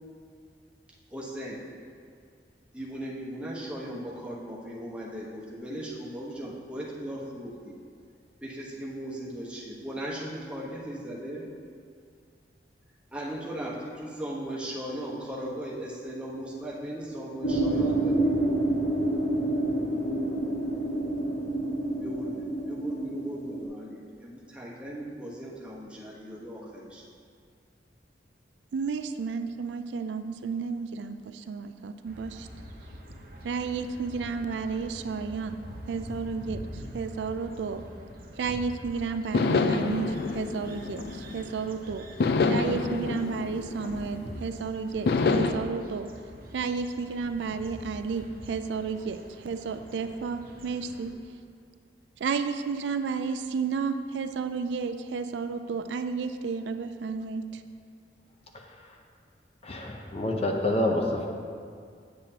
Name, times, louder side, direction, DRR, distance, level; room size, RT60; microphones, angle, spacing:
voice 1, 1.1-1.6 2.7-7.7 8.4-11.5 13.1-18.5 22.0-27.1 49.0-49.1, right 1 dB, 5° right, -5 dB, 1.1 m, -38 dB
sound 1, 17.4-23.6, right 1 dB, 80° left, 1.6 m, -28 dB
voice 2, 28.7-32.5 33.4-35.6 35.9-37.8 38.4-42.1 42.5-46.1 46.5-51.1 52.2-57.6, right 5 dB, 80° right, 9 dB, 0.3 m, -32 dB
sound 2, 32.0-51.1, equal, 55° right, 0.8 m, -45 dB
sound 3, 39.3-41.6 42.2-44.5 45.1-45.5, left 3 dB, 65° left, 0.4 m, -27 dB
voice 3, 59.6-61.3, left 1 dB, 35° left, 1 dB, 0.7 m, -27 dB
8.5 x 7.5 x 2.8 m, 2.2 s
head